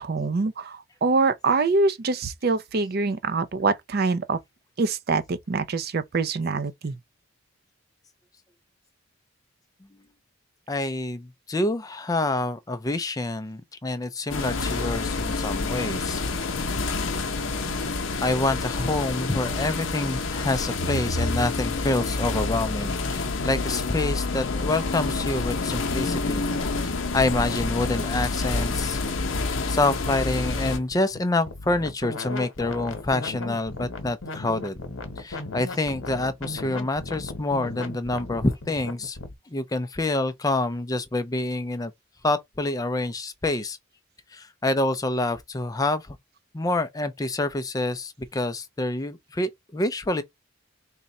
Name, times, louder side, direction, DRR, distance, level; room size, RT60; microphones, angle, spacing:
voice 1, 0.0-4.4 4.8-7.0, right 3 dB, 50° right, 0.5 m, -25 dB
voice 2, 10.7-16.2 18.2-26.4 27.1-29.0 29.7-34.8 35.2-39.2 39.5-41.9 42.2-43.8 44.3-46.2 46.5-50.2, left 2 dB, 15° left, 0.4 m, -27 dB
sound 1, 14.3-30.8, left 3 dB, 70° left, 0.7 m, -28 dB
sound 2, 23.2-39.3, left 2 dB, 90° left, 1.0 m, -38 dB
3.6 x 2.2 x 4.0 m
head